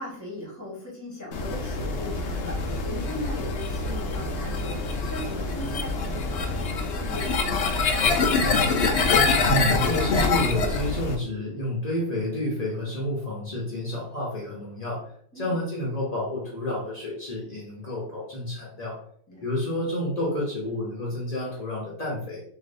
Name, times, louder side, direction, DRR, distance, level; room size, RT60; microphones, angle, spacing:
voice 1, 0.0-8.6 15.3-15.6 19.3-19.5, left 1 dB, 10° left, -4 dB, 1.2 m, -38 dB
sound 1, 1.3-11.1, left 4 dB, 90° left, 0.6 m, -25 dB
voice 2, 9.4-15.0 15.3-19.0 19.4-22.4, left 1 dB, 40° left, -4 dB, 0.5 m, -29 dB
3.3 x 2.9 x 4.1 m, 0.63 s
omnidirectional pair, 2.0 m